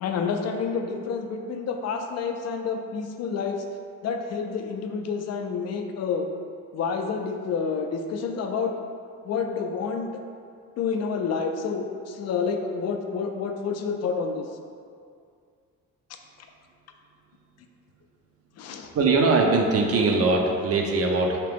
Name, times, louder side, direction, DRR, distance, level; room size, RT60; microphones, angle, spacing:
voice 1, 0.0-3.6 4.0-6.3 6.7-8.7 9.2-10.1 10.8-14.5 18.6-18.9, left 5 dB, 60° left, 4 dB, 0.4 m, -29 dB
voice 2, 18.9-21.4, right 3 dB, 50° right, 1 dB, 0.5 m, -21 dB
2.9 x 2.9 x 3.4 m, 2.2 s
cardioid pair, 90°, 30 cm